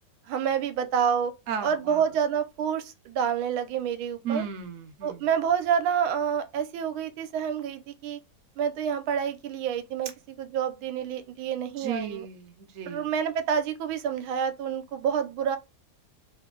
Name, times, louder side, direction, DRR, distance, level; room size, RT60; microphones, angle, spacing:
voice 1, 0.3-1.3 1.6-4.4 5.0-8.2 8.6-10.1 10.4-12.3 12.9-15.6, right 8 dB, 85° right, 1.5 m, -28 dB
voice 2, 1.5-2.0 4.2-5.3 11.8-13.1, right 7 dB, 60° right, 0.9 m, -35 dB
3.3 x 2.6 x 3.7 m
omnidirectional pair, 2.2 m